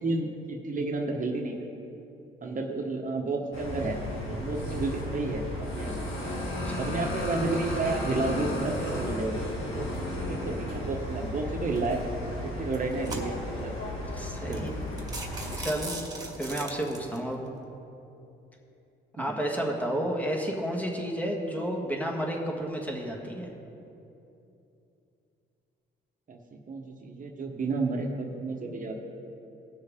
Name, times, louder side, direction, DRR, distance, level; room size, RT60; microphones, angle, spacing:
voice 1, 0.0-1.7 2.4-4.0 4.3-6.0 6.8-9.9 10.3-12.0 12.4-13.9 14.5-14.7 19.2-19.4 26.3-29.0, right 3 dB, 40° right, 1 dB, 1.2 m, -31 dB
sound 1, 3.5-15.6, left 1 dB, 80° left, 2.2 m, -34 dB
sound 2, 11.7-12.0 12.6-13.6 14.2-14.3 14.5-14.7 15.0-17.2, right 3 dB, 20° right, 1.8 m, -39 dB
voice 2, 14.2-14.8 15.6-15.9 16.4-17.4 19.2-23.5, right 1 dB, 5° left, 0 dB, 1.7 m, -31 dB
18.5 x 6.4 x 3.7 m, 2.8 s
cardioid pair, 90°, 20 cm